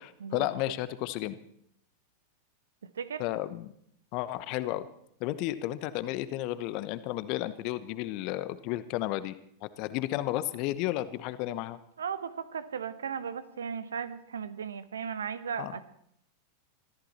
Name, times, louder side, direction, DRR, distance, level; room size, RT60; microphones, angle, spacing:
voice 1, 0.0-1.4 3.2-3.7 4.1-4.9 5.2-9.4 9.6-11.8 15.6-15.7, left 15 dB, 45° left, 14 dB, 1.0 m, -33 dB
voice 2, 12.0-15.8, right 7 dB, 65° right, 14 dB, 1.2 m, -36 dB
22.5 x 14.5 x 4.3 m, 0.70 s
figure-of-eight pair, 90°, 0 cm